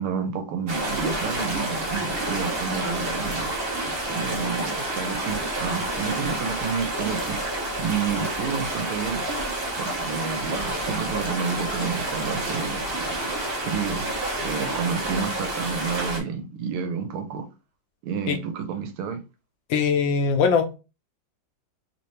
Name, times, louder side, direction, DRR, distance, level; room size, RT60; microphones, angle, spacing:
voice 1, 0.0-3.5 4.1-7.4 7.8-9.2 9.8-12.8 13.6-14.1 14.4-17.5 18.0-19.2, right 6 dB, 80° right, 1.6 m, -30 dB
sound 1, 0.7-16.2, right 1 dB, 40° right, 0.8 m, -29 dB
voice 2, 19.7-20.8, left 5 dB, 75° left, 1.2 m, -21 dB
3.8 x 2.7 x 3.1 m
omnidirectional pair, 2.4 m